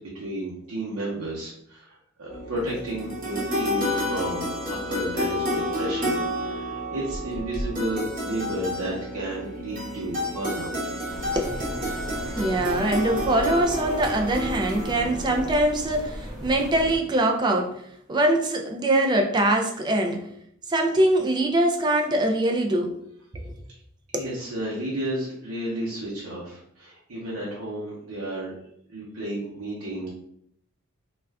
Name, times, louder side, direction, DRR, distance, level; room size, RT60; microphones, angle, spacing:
voice 1, 0.0-11.0 24.2-28.5 28.9-30.1, right 1 dB, 75° right, -7 dB, 0.8 m, -32 dB
sound 1, 2.3-15.5, left 1 dB, 35° right, 0.9 m, -30 dB
sound 2, 11.1-17.0, equal, ahead, 0.7 m, -36 dB
voice 2, 11.3-11.8 12.4-17.7 18.1-20.3 20.7-22.9 23.3-23.6 24.1-24.3, right 1 dB, 20° right, 2 dB, 0.3 m, -23 dB
2.4 x 2.2 x 3.3 m, 0.71 s
head